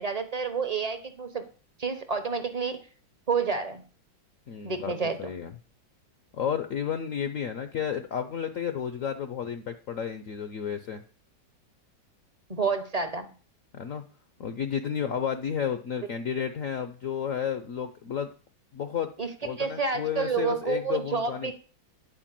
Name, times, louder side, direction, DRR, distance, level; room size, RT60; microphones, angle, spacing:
voice 1, 0.0-1.4 1.8-2.7 3.3-3.8 4.6-5.2 12.5-13.3 19.2-19.3 19.6-21.5, right 5 dB, 30° right, 7 dB, 0.7 m, -29 dB
voice 2, 4.5-5.5 6.3-11.0 13.7-14.0 14.4-18.3 18.7-19.1 19.4-21.5, left 8 dB, 60° left, 9 dB, 0.9 m, -32 dB
10.0 x 4.6 x 7.5 m, 0.38 s
omnidirectional pair, 2.0 m